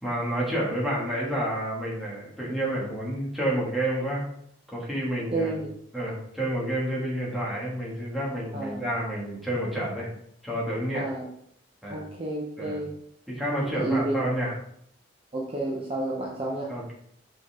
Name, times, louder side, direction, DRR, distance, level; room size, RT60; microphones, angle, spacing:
voice 1, 0.0-4.2 4.7-5.5 5.9-10.1 10.4-11.1 11.8-12.0 12.6-12.8 13.3-14.5 16.7-16.9, right 1 dB, ahead, -6 dB, 2.4 m, -29 dB
voice 2, 5.3-5.7 8.5-8.8 10.9-11.3 11.9-12.9 13.7-14.1 15.3-16.7, right 2 dB, 30° right, -3 dB, 1.0 m, -30 dB
6.2 x 5.6 x 3.7 m, 0.69 s
head